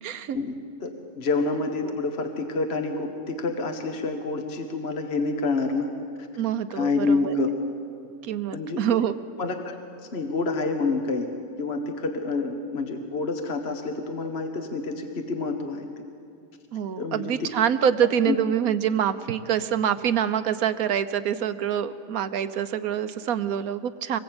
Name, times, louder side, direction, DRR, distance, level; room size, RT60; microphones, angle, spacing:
voice 1, 0.0-0.4 1.8-2.0 6.4-7.3 8.2-9.2 16.7-24.2, right 9 dB, 75° right, 12 dB, 1.4 m, -26 dB
voice 2, 0.8-5.9 6.2-6.3 6.7-7.5 8.5-9.0 9.4-9.8 10.1-11.3 11.6-15.8 17.0-17.5 18.2-18.4, left 3 dB, 45° left, 5 dB, 1.6 m, -28 dB
25.0 x 20.5 x 8.9 m, 2.6 s
omnidirectional pair, 1.5 m